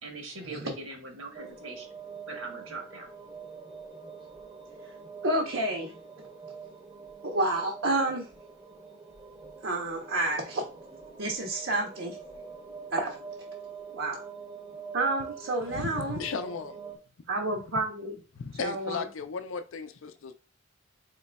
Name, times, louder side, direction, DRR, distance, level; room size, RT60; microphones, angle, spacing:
voice 1, 0.0-1.9 2.3-3.1, right 2 dB, 85° right, 1.2 m, -41 dB
sound 1, 1.3-17.0, right 5 dB, 15° right, 0.7 m, -45 dB
voice 2, 5.2-5.9 7.2-8.3 9.6-10.6 11.2-12.2 12.9-13.2 13.9-14.2 14.9-16.2 17.3-18.2 18.6-19.1, right 2 dB, 70° right, 0.8 m, -29 dB
voice 3, 15.6-16.8 18.3-20.3, left 5 dB, 80° left, 0.5 m, -36 dB
4.0 x 3.7 x 2.2 m
head